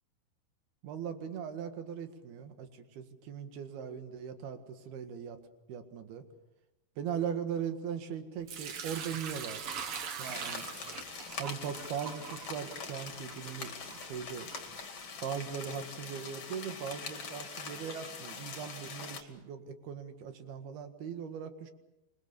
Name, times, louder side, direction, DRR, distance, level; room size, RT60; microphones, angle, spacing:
voice 1, 0.8-5.4 5.7-6.3 7.0-9.7 10.2-10.7 11.4-14.5 15.2-21.7, right 7 dB, 80° right, 8 dB, 3.7 m, -39 dB
Sink (filling or washing) / Liquid, 8.5-15.4, right 6 dB, 50° right, 1.8 m, -43 dB
sound 1, 10.2-19.2, left 5 dB, 40° left, 3.0 m, -43 dB
27.0 x 24.0 x 7.0 m, 0.96 s
omnidirectional pair, 4.5 m